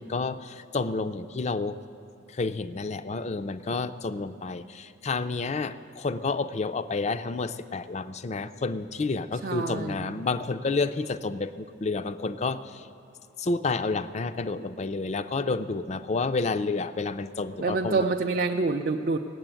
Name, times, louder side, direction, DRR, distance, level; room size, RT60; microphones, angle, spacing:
voice 1, 0.0-1.8 2.3-12.8 13.4-18.1, left 3 dB, 35° left, 12 dB, 0.4 m, -30 dB
voice 2, 9.4-10.3 17.6-19.2, right 3 dB, 45° right, 3 dB, 0.5 m, -27 dB
18.0 x 7.8 x 9.0 m, 2.7 s
head